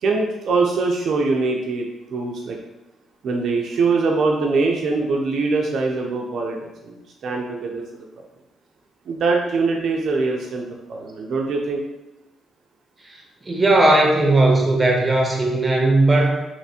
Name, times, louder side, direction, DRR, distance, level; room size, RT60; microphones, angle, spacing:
voice 1, 0.0-2.6 3.2-7.0 7.2-8.1 9.1-11.8, right 3 dB, 65° right, 0 dB, 0.4 m, -23 dB
voice 2, 13.4-16.4, right 2 dB, 20° right, 1 dB, 0.8 m, -17 dB
3.2 x 2.9 x 2.8 m, 1.0 s
cardioid pair, 90°, 0 cm